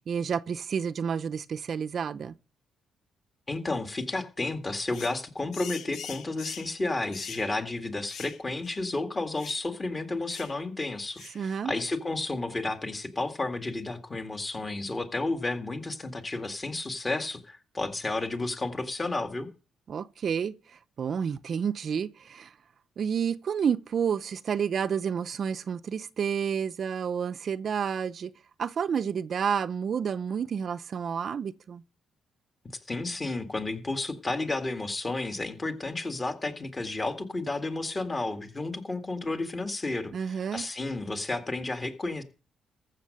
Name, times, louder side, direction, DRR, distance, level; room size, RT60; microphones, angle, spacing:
voice 1, 0.0-2.3 11.3-11.7 19.9-22.5 23.0-28.3 28.6-31.8 40.1-40.7, right 7 dB, 55° right, 0.6 m, -30 dB
voice 2, 3.5-19.5 32.9-42.2, left 2 dB, 25° left, 1.9 m, -32 dB
sound 1, 4.9-5.2 5.5-6.7 7.1-7.5 8.0-8.4 8.6-8.8 9.4-9.7 10.3-10.6 11.2-11.4, left 8 dB, 65° left, 0.9 m, -42 dB
14.5 x 6.5 x 6.4 m
cardioid pair, 90°, 0 cm